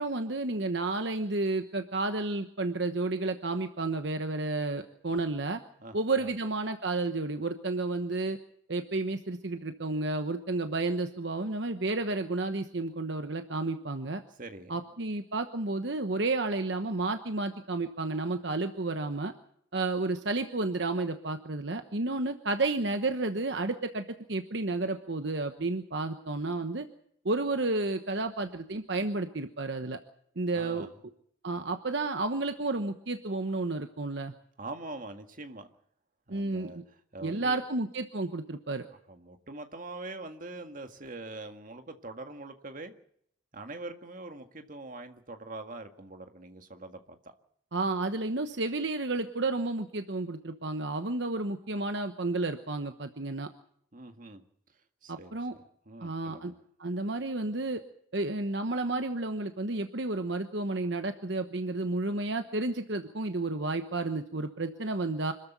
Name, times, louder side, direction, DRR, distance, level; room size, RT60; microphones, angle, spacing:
voice 1, 0.0-5.6 5.9-8.4 8.7-14.2 14.7-19.3 19.7-26.9 27.2-30.0 30.4-30.9 31.4-34.3 36.3-36.8 37.2-38.9 47.7-53.5 55.1-55.5 56.0-56.5 56.8-57.8 58.1-65.3, right 2 dB, 65° right, 7 dB, 1.1 m, -31 dB
voice 2, 5.8-6.3 14.4-14.8 30.5-30.9 34.6-35.7 36.3-36.8 37.1-37.6 39.1-42.9 43.5-47.2 53.9-54.5 55.0-56.6, right 2 dB, 45° right, 6 dB, 1.9 m, -43 dB
25.5 x 13.5 x 8.1 m, 0.69 s
head